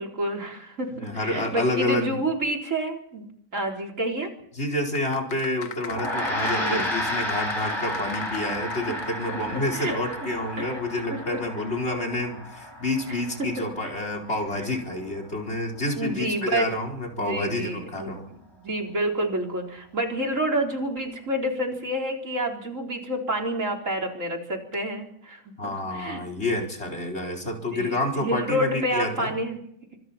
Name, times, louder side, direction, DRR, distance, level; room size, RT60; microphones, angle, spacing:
voice 1, 0.0-3.3 3.5-4.3 6.6-6.9 8.9-10.0 10.6-10.8 11.1-11.4 13.1-13.6 14.6-14.7 16.0-16.7 17.2-18.2 18.6-25.5 25.9-26.2 27.4-29.6, right 1 dB, 70° right, 1 dB, 4.6 m, -29 dB
voice 2, 1.0-2.2 4.6-18.3 25.6-29.3, left 1 dB, 55° left, 4 dB, 4.7 m, -29 dB
sound 1, 4.9-9.4 9.7-9.8, left 6 dB, 80° left, 1.6 m, -40 dB
Gong, 5.9-15.4, equal, 20° left, 5.8 m, -32 dB
25.0 x 25.0 x 4.4 m, 0.68 s
omnidirectional pair, 1.4 m